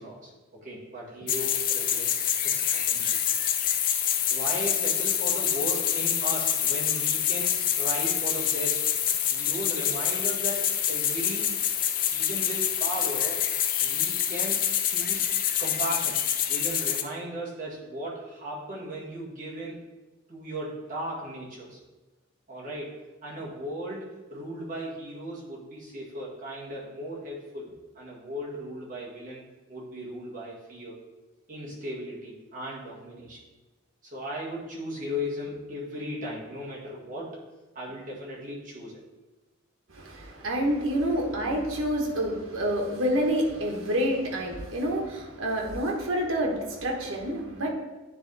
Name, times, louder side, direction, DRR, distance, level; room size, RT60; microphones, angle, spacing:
voice 1, 0.0-3.2 4.3-8.9 9.3-11.6 12.1-13.4 13.8-15.3 15.6-16.2 16.5-19.8 20.3-21.8 22.5-22.9 23.2-29.4 29.7-31.0 31.5-33.4 34.1-37.4 37.8-39.0, equal, 40° right, -5 dB, 1.8 m, -37 dB
sound 1, 1.3-17.0, left 9 dB, 45° left, 0.4 m, -26 dB
voice 2, 39.9-47.7, equal, 90° right, 1 dB, 1.3 m, -28 dB
9.5 x 3.5 x 4.0 m, 1.1 s
head